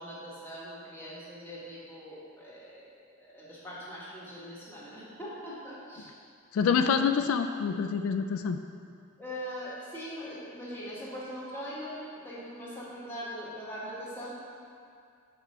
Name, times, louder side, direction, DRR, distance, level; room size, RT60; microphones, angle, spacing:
voice 1, 0.0-2.9 3.2-6.1 9.2-14.4, equal, 10° left, -6 dB, 1.5 m, -41 dB
voice 2, 6.5-8.6, left 6 dB, 90° left, 7 dB, 0.3 m, -26 dB
5.9 x 4.7 x 5.4 m, 2.3 s
head